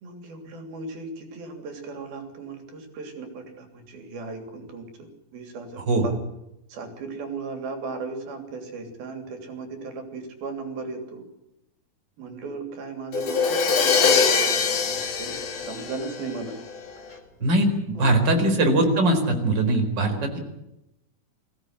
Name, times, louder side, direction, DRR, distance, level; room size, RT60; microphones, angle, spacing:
voice 1, 0.0-6.2 6.7-11.2 12.2-16.5 17.1-17.2 17.9-18.5, right 3 dB, 85° right, 6 dB, 5.0 m, -36 dB
Crash cymbal, 13.1-16.9, left 5 dB, 60° left, 3.7 m, -23 dB
voice 2, 17.4-20.4, right 1 dB, 30° right, 4 dB, 4.7 m, -21 dB
25.0 x 16.5 x 9.7 m, 0.87 s
omnidirectional pair, 4.2 m